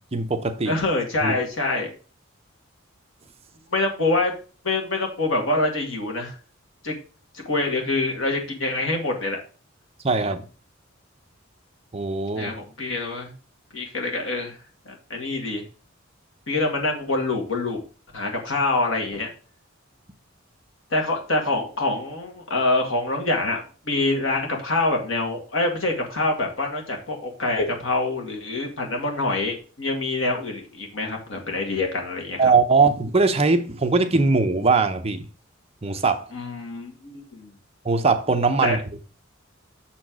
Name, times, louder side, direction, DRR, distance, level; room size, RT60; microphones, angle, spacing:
voice 1, 0.0-0.8 1.2-1.4 10.0-10.4 11.9-12.5 32.4-35.3 35.8-36.3 37.8-38.8, right 4 dB, 30° right, 0.7 m, -21 dB
voice 2, 0.7-1.9 3.7-4.3 4.6-6.3 6.8-6.9 7.3-9.4 12.4-13.3 13.7-14.6 14.9-15.6 16.5-17.8 18.1-19.3 20.9-32.4 36.3-37.5 38.6-38.8, left 2 dB, 75° left, 2.1 m, -25 dB
7.0 x 4.4 x 6.2 m
head